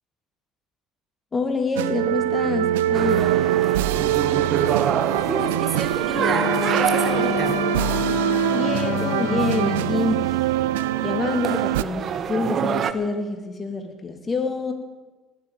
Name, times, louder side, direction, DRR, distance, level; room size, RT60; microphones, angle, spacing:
voice 1, 1.3-3.3 8.5-10.3 11.0-14.7, left 3 dB, 30° left, 6 dB, 2.6 m, -26 dB
sound 1, 1.8-11.8, right 14 dB, 75° right, 0.4 m, -23 dB
sound 2, 2.9-12.9, right 8 dB, 50° right, 1.0 m, -28 dB
voice 2, 5.3-7.6, right 3 dB, 30° right, 8 dB, 1.7 m, -30 dB
Wind instrument woodwind instrument, 6.1-10.0, left 10 dB, 55° left, 0.8 m, -28 dB
19.0 x 7.7 x 8.9 m, 1.2 s
hypercardioid pair, 60°, 0 cm